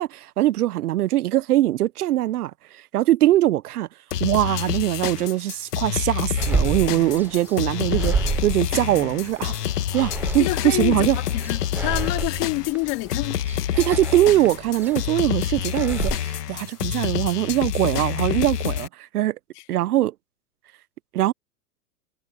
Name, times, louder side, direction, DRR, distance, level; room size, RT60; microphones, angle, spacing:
voice 1, 0.0-3.9 4.2-8.2 8.4-9.5 9.9-11.2 13.8-19.4 19.7-20.1 21.1-21.3, right 14 dB, 70° right, 0.8 m, -22 dB
sound 1, 4.1-18.9, left 11 dB, 75° left, 2.0 m, -27 dB
sound 2, 6.4-16.2, right 5 dB, 5° right, 0.4 m, -30 dB
voice 2, 10.4-13.4 19.5-19.6, left 24 dB, 40° left, 2.8 m, -27 dB
hypercardioid pair, 130°, 47 cm